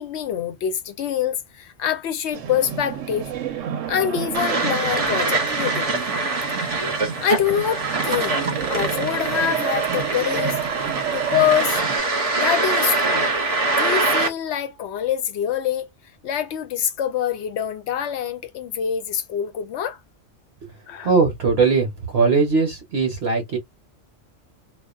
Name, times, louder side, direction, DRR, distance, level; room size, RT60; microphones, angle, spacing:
voice 1, 0.0-3.4 3.9-6.0 7.2-10.6 11.1-11.8 12.4-13.3 13.7-15.9 16.2-20.0 20.9-21.1, left 9 dB, 70° left, 0.8 m, -25 dB
sound 1, 2.3-12.0, right 8 dB, 90° right, 1.0 m, -29 dB
sound 2, 4.3-14.3, right 2 dB, 40° right, 0.5 m, -24 dB
voice 2, 21.0-23.6, right 4 dB, 60° right, 1.0 m, -20 dB
2.4 x 2.3 x 2.3 m
omnidirectional pair, 1.3 m